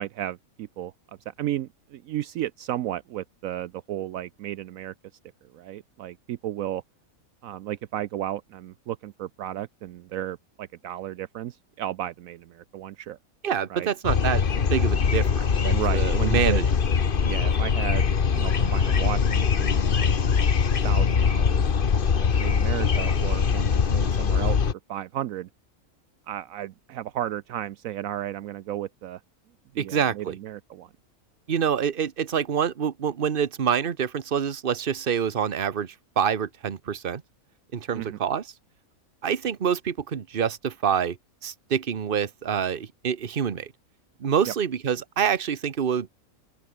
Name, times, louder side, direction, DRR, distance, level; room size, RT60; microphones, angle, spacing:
voice 1, 0.0-4.9 5.4-6.8 7.4-13.2 13.7-13.9 15.5-16.6 17.2-20.2 20.8-21.7 22.2-24.6 24.9-25.5 26.3-29.2 29.7-30.9 37.9-38.2 44.5-44.6, right 12 dB, 75° right, 1.0 m, -34 dB
voice 2, 13.4-16.7 29.8-30.4 31.5-37.2 37.7-38.4 39.2-41.2 41.4-43.7 44.2-46.1, right 7 dB, 40° right, 1.2 m, -26 dB
sound 1, 14.0-24.7, left 6 dB, 40° left, 1.2 m, -22 dB
open air
omnidirectional pair, 1.5 m